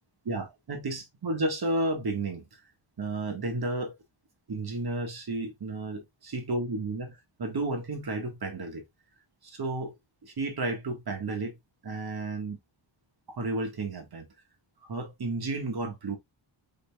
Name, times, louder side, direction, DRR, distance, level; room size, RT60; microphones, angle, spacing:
voice 1, 0.2-2.4 3.0-3.9 4.5-7.1 7.4-8.8 9.5-9.9 10.2-11.5 11.8-12.6 13.3-14.2 14.9-16.2, right 2 dB, 50° right, 1.7 m, -32 dB
5.3 x 3.9 x 2.3 m
wide cardioid pair, 165°, 48 cm